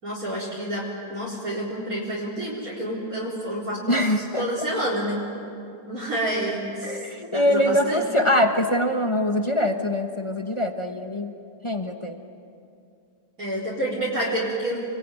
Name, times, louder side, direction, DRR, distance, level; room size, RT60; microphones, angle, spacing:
voice 1, 0.0-4.0 4.4-5.2 5.9-7.0 7.3-8.0 13.4-14.8, right 1 dB, 40° right, -5 dB, 4.7 m, -28 dB
voice 2, 3.9-4.5 6.8-11.3 11.6-12.2, left 1 dB, 25° left, 5 dB, 0.7 m, -23 dB
28.0 x 22.0 x 9.1 m, 2.5 s
omnidirectional pair, 2.4 m